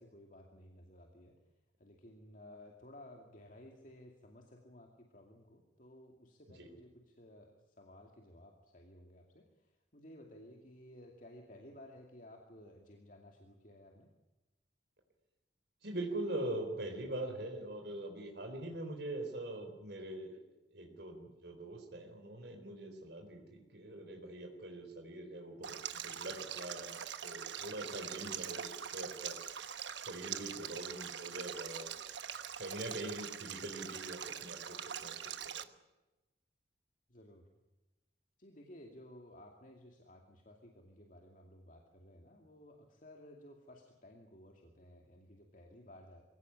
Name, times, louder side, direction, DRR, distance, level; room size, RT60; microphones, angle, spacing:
voice 1, 0.0-1.4 1.8-14.1 27.9-28.0 37.1-37.5 38.4-46.2, left 1 dB, 45° left, 1 dB, 2.5 m, -56 dB
voice 2, 15.8-20.4 20.7-29.4 30.0-31.9 32.6-34.8 35.0-35.2 35.5-35.7, right 1 dB, 65° right, 2 dB, 4.1 m, -43 dB
Stream, 25.6-35.6, right 9 dB, 80° right, 1.1 m, -43 dB
23.0 x 17.0 x 9.8 m, 1.0 s
head